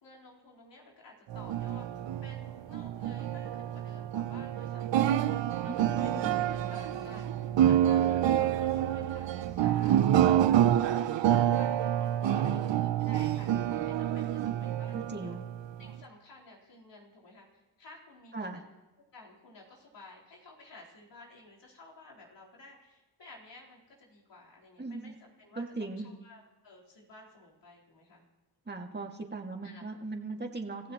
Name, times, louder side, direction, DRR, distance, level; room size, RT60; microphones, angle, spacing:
voice 1, 0.0-10.0 10.3-15.4 15.8-18.6 19.1-28.2 29.6-29.8, left 2 dB, 75° left, -4 dB, 4.2 m, -54 dB
sound 1, 1.3-16.0, right 11 dB, 80° right, 0.7 m, -28 dB
voice 2, 5.7-6.4 14.9-15.4 18.3-18.6 24.8-25.1 25.6-26.1 28.7-30.9, right 3 dB, 25° right, 2 dB, 2.2 m, -39 dB
sound 2, 5.8-10.9, left 2 dB, 60° left, 3.6 m, -53 dB
29.5 x 15.0 x 3.1 m, 1.2 s
cardioid pair, 55°, 43 cm